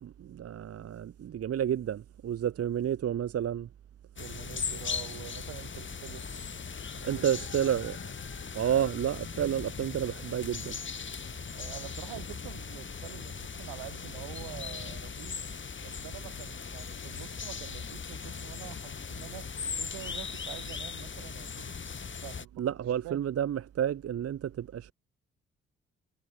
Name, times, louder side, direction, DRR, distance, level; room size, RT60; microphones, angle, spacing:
voice 1, 0.0-3.7 7.0-8.1 8.5-10.8 22.6-24.9, right 10 dB, 45° right, 1.2 m, -30 dB
sound 1, 4.2-22.5, left 5 dB, 35° left, 2.9 m, -39 dB
voice 2, 4.2-6.3 6.9-7.2 11.5-15.4 15.8-19.5 19.8-21.7 22.2-22.7 23.0-23.3, right 22 dB, 65° right, 4.2 m, -46 dB
figure-of-eight pair, 40°, 35 cm